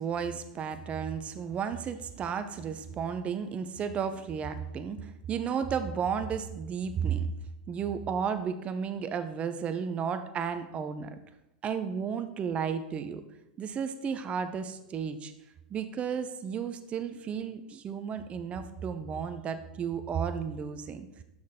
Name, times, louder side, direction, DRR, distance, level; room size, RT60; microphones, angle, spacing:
voice 1, 0.0-7.3 7.7-11.2 11.6-13.2 13.6-15.3 15.7-21.1, right 7 dB, 30° right, 10 dB, 0.6 m, -33 dB
6.3 x 6.1 x 3.7 m, 0.89 s
hypercardioid pair, 100°, 4 cm